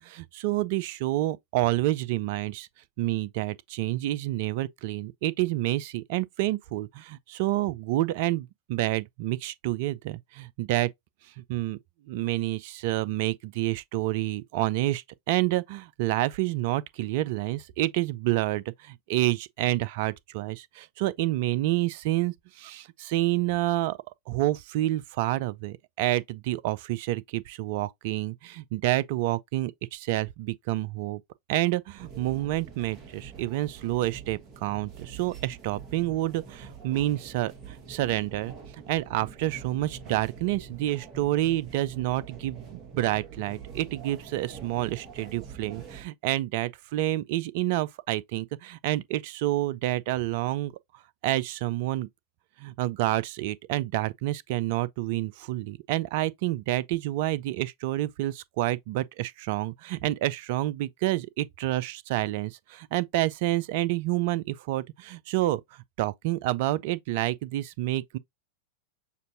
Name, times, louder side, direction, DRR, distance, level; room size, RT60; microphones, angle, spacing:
voice 1, 0.0-2.7 3.0-10.9 11.5-11.8 12.1-24.0 24.3-31.2 31.5-38.5 38.9-50.7 51.2-52.1 52.6-65.6 66.0-68.2, right 16 dB, 50° right, 0.3 m, -28 dB
sound 1, 32.0-46.1, right 6 dB, 30° right, 1.0 m, -45 dB
6.6 x 2.5 x 2.5 m
figure-of-eight pair, 90°, 0 cm